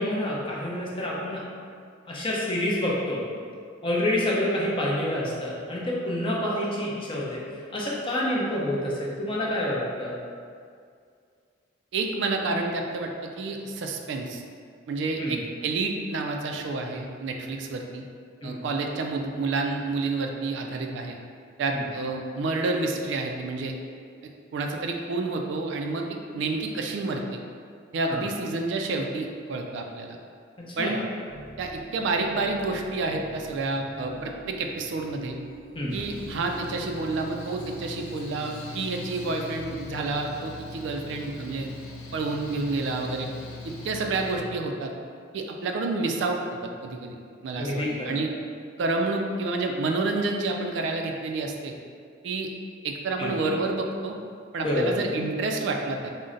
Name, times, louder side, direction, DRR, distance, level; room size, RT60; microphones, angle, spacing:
voice 1, 0.0-1.4 2.1-3.2 3.8-7.4 7.7-10.1 15.2-15.4 18.4-18.6 21.7-21.8 28.1-28.2 30.6-31.0 35.7-36.0 47.6-48.2 53.2-53.4 54.6-55.0, left 1 dB, 25° left, -5 dB, 0.6 m, -28 dB
voice 2, 11.9-14.4 14.9-18.0 18.4-21.2 21.6-23.7 24.5-27.4 27.9-30.2 30.8-31.0 31.6-35.4 35.9-41.7 42.1-43.3 43.6-44.9 45.3-47.2 47.4-48.3 48.8-51.7 52.2-52.5 52.8-54.2 54.5-56.1, right 3 dB, 60° right, 2 dB, 0.3 m, -29 dB
sound 1, 31.3-39.7, equal, 60° left, 0.9 m, -45 dB
Mechanical fan, 35.9-44.4, left 2 dB, 90° left, 0.5 m, -41 dB
3.8 x 2.1 x 3.8 m, 2.2 s
head